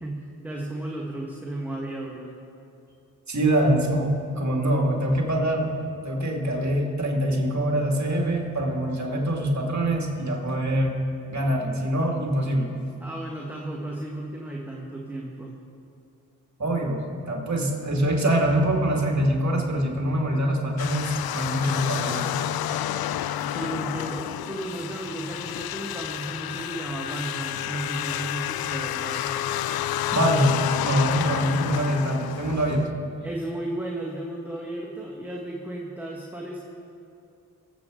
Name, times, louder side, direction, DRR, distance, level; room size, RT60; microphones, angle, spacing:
voice 1, 0.0-2.4 13.0-15.5 23.4-29.4 33.2-36.6, right 1 dB, 5° right, -2 dB, 1.7 m, -34 dB
voice 2, 3.3-5.7 6.0-10.9 11.3-12.7 16.6-22.3 30.1-33.0, right 1 dB, 45° right, 0 dB, 2.3 m, -24 dB
sound 1, 20.8-32.9, left 11 dB, 70° left, 0.5 m, -30 dB
23.0 x 8.2 x 3.9 m, 2.6 s
supercardioid pair, 50°, 37 cm